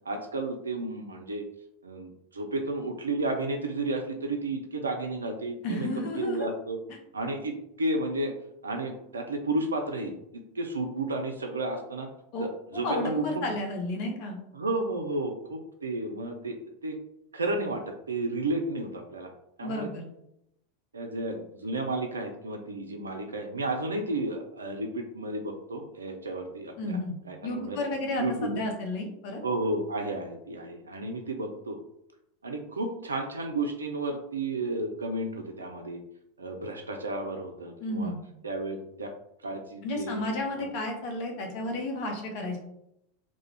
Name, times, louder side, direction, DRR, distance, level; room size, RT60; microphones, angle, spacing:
voice 1, 0.0-1.5 1.8-5.9 6.2-6.8 7.1-8.3 8.6-10.1 10.5-12.1 12.4-13.5 14.5-16.6 16.8-17.0 17.3-19.3 19.6-19.9 20.9-27.8 28.2-28.6 29.4-31.8 32.4-36.0 36.4-38.1 38.4-39.1 39.4-40.2 40.6-40.7, right 2 dB, 80° right, 4 dB, 0.3 m, -32 dB
voice 2, 5.6-6.5 12.3-12.5 12.8-14.4 19.6-20.1 26.8-27.2 27.4-29.4 37.8-38.2 39.8-42.6, left 2 dB, 50° left, 3 dB, 0.6 m, -32 dB
2.4 x 2.1 x 3.1 m, 0.79 s
figure-of-eight pair, 85°, 0 cm